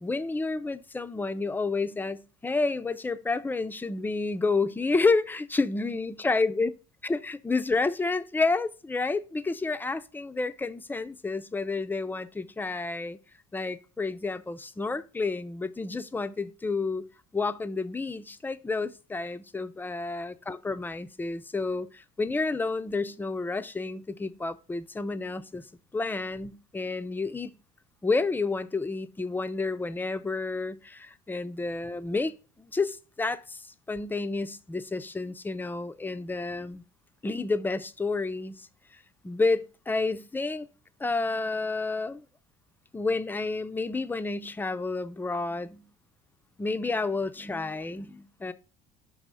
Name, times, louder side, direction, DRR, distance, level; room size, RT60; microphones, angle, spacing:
voice 1, 0.0-6.7 7.0-13.2 13.5-17.1 17.3-25.6 25.9-27.5 28.0-36.8 37.2-38.7 39.2-40.7 41.0-42.2 42.9-45.9 46.6-48.5, left 3 dB, 10° left, 0.5 m, -30 dB
6.2 x 3.0 x 5.4 m
cardioid pair, 105°, 18 cm